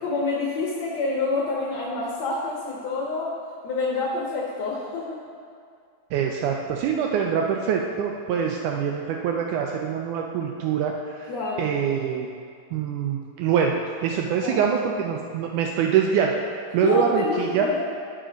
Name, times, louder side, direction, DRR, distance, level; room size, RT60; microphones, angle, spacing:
voice 1, 0.0-3.4 3.6-5.2 11.3-11.8 14.4-14.6 16.8-17.8, left 3 dB, 70° left, -3 dB, 1.6 m, -27 dB
voice 2, 6.1-11.3 11.6-12.3 12.7-13.8 14.0-16.3 16.7-17.7, right 7 dB, 80° right, 1 dB, 1.8 m, -24 dB
11.5 x 5.0 x 5.0 m, 2.3 s
omnidirectional pair, 4.0 m